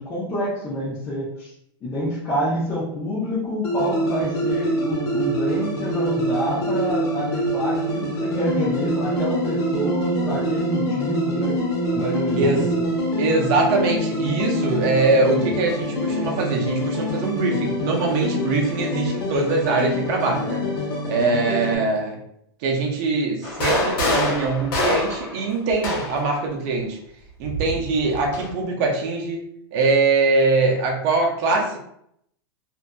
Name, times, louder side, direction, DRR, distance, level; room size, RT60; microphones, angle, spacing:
voice 1, 0.0-1.5 1.8-11.6 11.9-12.6, equal, 25° left, -9 dB, 0.8 m, -27 dB
sound 1, 3.6-21.8, equal, 80° left, 0.9 m, -25 dB
voice 2, 12.3-12.7 13.2-20.6 21.0-22.2 22.6-27.0 27.4-29.4 29.7-31.8, right 3 dB, 45° right, 1 dB, 0.6 m, -22 dB
sound 2, 23.4-26.3 27.4-28.5, left 1 dB, 60° left, 0.9 m, -25 dB
2.6 x 2.5 x 2.2 m, 0.73 s
supercardioid pair, 150°, 13 cm